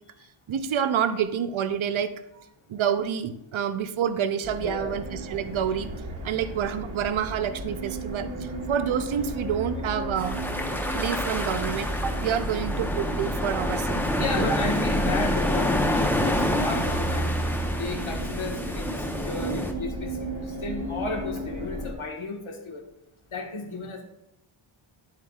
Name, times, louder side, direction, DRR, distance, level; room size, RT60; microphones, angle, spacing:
voice 1, 0.5-2.1 2.7-5.9 6.2-10.4 10.9-14.5, right 8 dB, 75° right, 11 dB, 0.6 m, -28 dB
sound 1, 4.4-21.9, right 1 dB, 40° right, 1.2 m, -33 dB
voice 2, 4.6-5.0 11.1-11.4 14.2-22.8 23.3-24.0, left 3 dB, 75° left, 2 dB, 1.5 m, -34 dB
sound 2, 10.2-19.7, left 1 dB, 5° left, 0.7 m, -28 dB
10.0 x 7.4 x 2.4 m, 0.83 s
wide cardioid pair, 125°, 48 cm